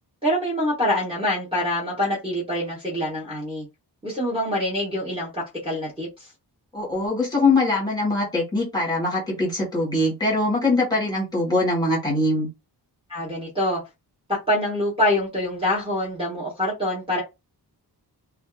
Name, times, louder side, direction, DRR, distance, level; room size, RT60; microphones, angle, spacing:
voice 1, 0.2-3.7 4.0-6.3 13.1-13.8 14.3-17.2, left 1 dB, 15° right, 0.9 m, -25 dB
voice 2, 6.7-12.5, left 2 dB, 10° left, 1.2 m, -22 dB
2.5 x 2.2 x 2.3 m
wide cardioid pair, 165°, 41 cm